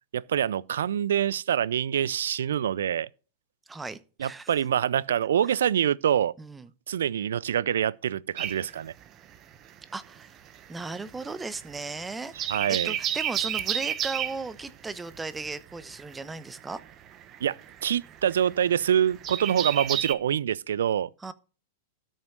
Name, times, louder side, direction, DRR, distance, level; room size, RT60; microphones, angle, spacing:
voice 1, 0.1-3.1 4.2-6.3 6.9-8.9 12.5-13.0 17.4-21.1, right 9 dB, 70° right, 0.4 m, -25 dB
voice 2, 3.7-4.5 6.4-6.7 9.9-10.4 10.7-12.3 12.7-16.8 21.2-21.3, right 3 dB, 10° right, 0.9 m, -36 dB
sound 1, 8.4-9.8 10.0-20.1, right 10 dB, 35° right, 1.1 m, -32 dB
13.0 x 6.4 x 6.2 m
figure-of-eight pair, 100°, 0 cm